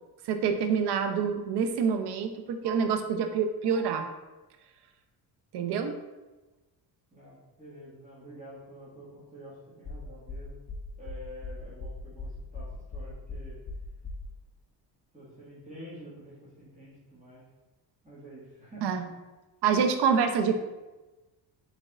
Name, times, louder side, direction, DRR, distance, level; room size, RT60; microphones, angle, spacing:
voice 1, 0.3-4.1 5.5-5.9 18.8-19.0 19.6-20.6, right 6 dB, 60° right, 7 dB, 0.6 m, -26 dB
voice 2, 7.1-10.6 11.0-13.6 15.1-17.4 18.0-19.1, equal, 15° right, -8 dB, 1.5 m, -48 dB
sound 1, 9.8-14.3, left 3 dB, 20° left, 0.6 m, -39 dB
4.1 x 3.4 x 2.3 m, 1.1 s
cardioid pair, 95°, 46 cm